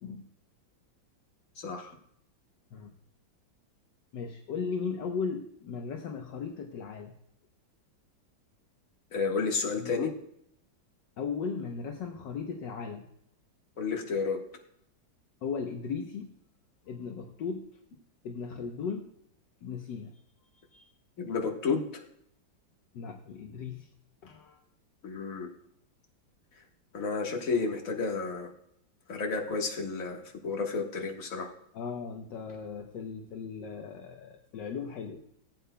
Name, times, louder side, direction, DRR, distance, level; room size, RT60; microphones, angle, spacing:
voice 1, 1.6-2.0 9.1-10.1 13.8-14.4 21.2-22.0 25.0-25.5 26.9-28.5 29.1-31.5, left 4 dB, 45° left, 1 dB, 1.8 m, -31 dB
voice 2, 4.1-7.1 9.7-9.9 11.2-13.1 15.4-16.3 16.9-17.7 18.2-19.1 19.6-20.1 20.7-20.9 22.9-23.9 24.2-24.6 31.7-35.2, left 5 dB, 70° left, 3 dB, 1.5 m, -37 dB
16.0 x 8.6 x 2.2 m, 0.71 s
omnidirectional pair, 2.1 m